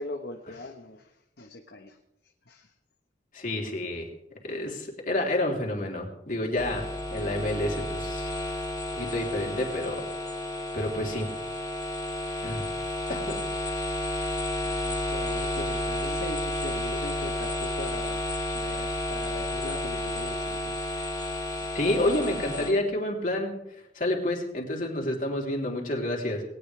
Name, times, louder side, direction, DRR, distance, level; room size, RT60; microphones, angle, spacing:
voice 1, 0.0-2.0 2.5-2.7 14.6-18.2 18.5-20.9 21.2-22.7, left 2 dB, 60° left, 3 dB, 1.3 m, -41 dB
voice 2, 3.3-4.1 4.4-8.3 8.9-10.1 10.7-11.3 12.4-12.6 13.1-13.4 21.7-23.5 23.9-26.4, left 1 dB, 45° left, 0 dB, 3.7 m, -29 dB
sound 1, 6.6-22.7, left 1 dB, 20° left, 2.6 m, -31 dB
20.5 x 18.5 x 3.4 m, 0.82 s
head